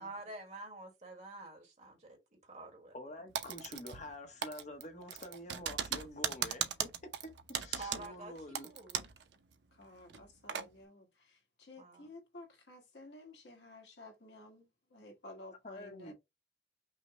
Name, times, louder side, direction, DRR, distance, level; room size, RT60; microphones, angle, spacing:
voice 1, 0.0-3.3 7.8-9.0 11.8-12.1, right 2 dB, 40° right, 1.5 m, -48 dB
voice 2, 2.9-6.9 7.2-8.7 15.6-16.1, left 1 dB, 40° left, 0.8 m, -47 dB
Typing, 3.3-4.1 4.4-9.2 9.5-9.6 10.1-10.7, right 8 dB, 80° right, 0.6 m, -38 dB
voice 3, 9.7-16.1, left 2 dB, 80° left, 1.5 m, -54 dB
5.6 x 2.1 x 3.0 m
head